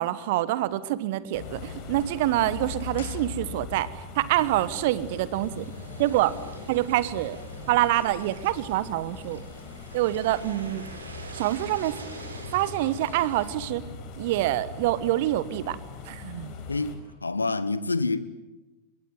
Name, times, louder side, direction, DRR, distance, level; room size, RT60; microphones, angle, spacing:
voice 1, 0.0-3.9 4.1-5.7 6.0-6.4 6.7-7.4 7.7-9.4 9.9-10.8 11.3-12.0 12.5-13.8 14.2-15.8 16.1-16.5, right 15 dB, 50° right, 1.3 m, -26 dB
sound 1, 1.3-17.0, left 5 dB, 45° left, 5.3 m, -41 dB
sound 2, 2.9-4.0 4.3-4.4, left 9 dB, 60° left, 2.4 m, -47 dB
sound 3, 4.4-13.5, right 2 dB, 75° right, 4.7 m, -46 dB
voice 2, 17.2-18.2, left 3 dB, 80° left, 1.2 m, -26 dB
26.0 x 22.5 x 9.3 m
figure-of-eight pair, 90°, 0 cm